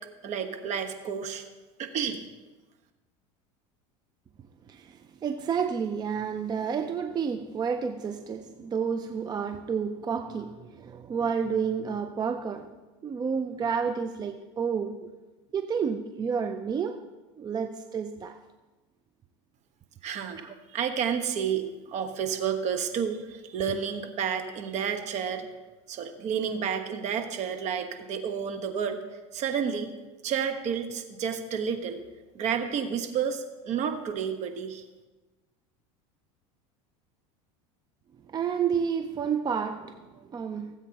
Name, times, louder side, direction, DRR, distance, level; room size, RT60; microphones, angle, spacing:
voice 1, 0.2-1.4 1.8-2.2 20.0-20.4 20.7-25.5 25.9-29.0 29.3-29.9 30.2-32.0 32.3-34.8, right 7 dB, 45° right, 7 dB, 1.2 m, -30 dB
voice 2, 4.7-12.7 13.0-15.1 15.5-17.0 17.4-18.4 20.4-20.6 38.3-40.7, right 6 dB, 25° right, 7 dB, 0.5 m, -30 dB
17.5 x 8.1 x 2.9 m, 1.2 s
supercardioid pair, 105°, 16 cm